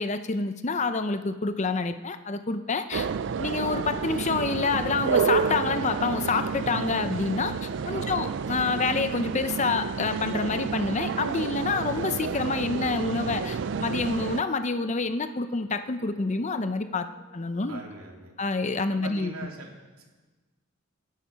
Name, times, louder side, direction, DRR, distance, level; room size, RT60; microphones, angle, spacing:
voice 1, 0.0-3.1 3.4-17.1 17.3-17.8 18.4-19.3, left 4 dB, 30° left, 10 dB, 0.6 m, -28 dB
sound 1, 2.9-14.4, right 6 dB, 55° right, 0.4 m, -30 dB
sound 2, 3.5-13.7, right 2 dB, 15° right, 4.6 m, -52 dB
sound 3, 11.1-18.3, left 2 dB, 15° left, 2.2 m, -54 dB
voice 2, 17.7-18.3 18.9-19.7 20.0-20.1, right 3 dB, 80° right, 0 dB, 2.6 m, -42 dB
23.0 x 8.6 x 5.6 m, 1.3 s
head